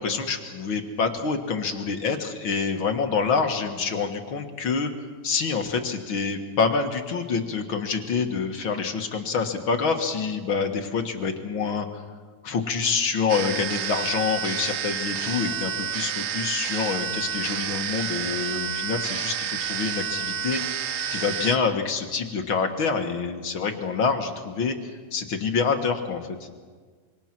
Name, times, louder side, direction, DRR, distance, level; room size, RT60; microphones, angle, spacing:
voice 1, 0.0-4.9 5.2-12.0 12.4-24.8 25.1-26.5, left 5 dB, 45° left, 4 dB, 1.8 m, -27 dB
sound 1, 13.3-21.6, right 8 dB, 75° right, 2.7 m, -30 dB
26.0 x 24.5 x 6.1 m, 1.5 s
omnidirectional pair, 4.0 m